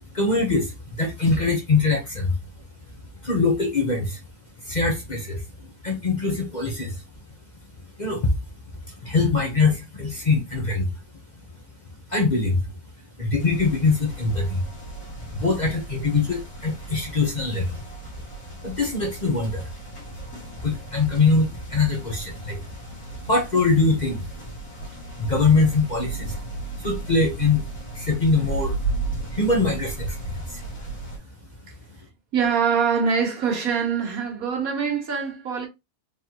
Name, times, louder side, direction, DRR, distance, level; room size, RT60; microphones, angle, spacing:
voice 1, 0.1-2.4 3.2-4.2 4.6-7.0 8.0-8.4 8.9-10.9 12.1-12.6 13.2-14.6 15.3-17.8 18.6-19.7 20.6-22.7 23.3-24.3 25.2-26.4 26.8-27.6 27.9-28.8 29.3-30.6 30.9-31.0, left 3 dB, 35° left, 1.0 m, -23 dB
sound 1, 13.4-31.2, right 3 dB, 75° left, 2.2 m, -35 dB
voice 2, 32.3-35.7, right 6 dB, 70° right, 1.6 m, -24 dB
4.0 x 3.5 x 2.9 m
omnidirectional pair, 1.6 m